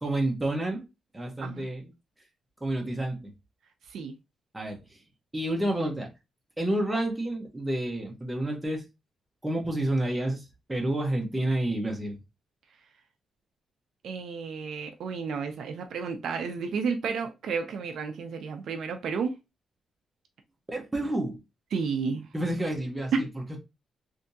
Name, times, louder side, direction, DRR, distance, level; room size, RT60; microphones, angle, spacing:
voice 1, 0.0-0.9 1.1-1.9 2.6-3.3 4.5-5.0 5.3-6.1 6.6-8.8 9.4-12.2 20.7-21.4 22.3-23.6, right 1 dB, 10° right, 0.8 m, -29 dB
voice 2, 14.0-19.4 21.7-22.3, right 5 dB, 60° right, 0.5 m, -32 dB
3.4 x 2.7 x 2.6 m
wide cardioid pair, 170°, 0 cm